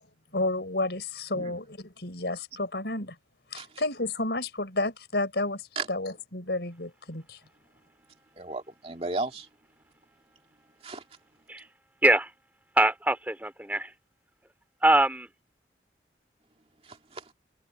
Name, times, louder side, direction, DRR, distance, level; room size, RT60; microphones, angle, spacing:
voice 1, 0.3-3.1 3.5-5.6 5.9-7.4, left 2 dB, 70° left, 4.6 m, -31 dB
voice 2, 8.4-9.5 10.8-11.0 16.8-17.3, right 3 dB, 35° right, 2.6 m, -35 dB
voice 3, 12.8-13.9 14.8-15.3, right 1 dB, 10° right, 3.3 m, -23 dB
head